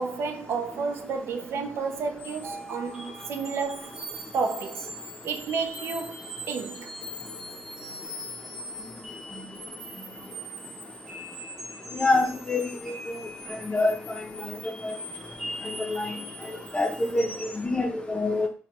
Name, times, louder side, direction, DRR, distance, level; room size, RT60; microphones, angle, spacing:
voice 1, 0.0-4.0 4.3-4.9 5.2-6.9, right 5 dB, 70° right, 0.4 m, -31 dB
sound 1, 2.2-17.7, equal, 15° right, 1.0 m, -41 dB
voice 2, 11.9-12.9 13.5-14.2 14.8-14.9 15.9-16.1 16.7-18.5, left 2 dB, 20° left, 0.5 m, -26 dB
3.3 x 2.0 x 2.8 m
cardioid pair, 95°, 4 cm